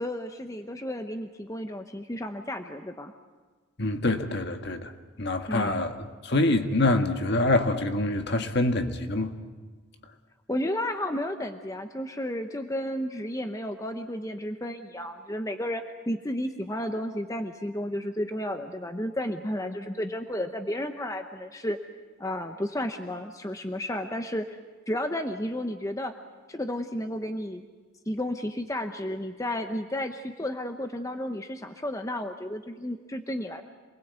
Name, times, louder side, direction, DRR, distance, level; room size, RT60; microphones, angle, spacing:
voice 1, 0.0-3.1 5.5-5.8 10.5-21.8 22.2-24.6 24.9-26.1 26.5-27.6 28.1-33.6, left 1 dB, 15° left, 6 dB, 0.9 m, -32 dB
voice 2, 3.8-4.9 5.2-9.3, left 2 dB, 50° left, 6 dB, 1.6 m, -25 dB
27.0 x 20.5 x 8.2 m, 1.4 s
head